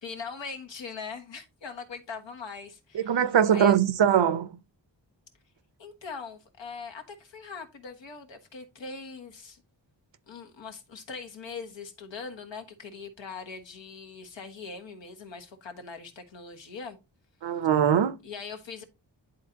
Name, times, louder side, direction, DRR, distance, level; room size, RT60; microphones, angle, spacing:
voice 1, 0.0-3.7 5.8-9.6 10.3-17.0 18.2-18.8, left 5 dB, 80° left, 1.5 m, -41 dB
voice 2, 2.9-4.6 17.4-18.1, right 8 dB, 75° right, 0.8 m, -22 dB
10.5 x 4.0 x 2.8 m
wide cardioid pair, 95°, 44 cm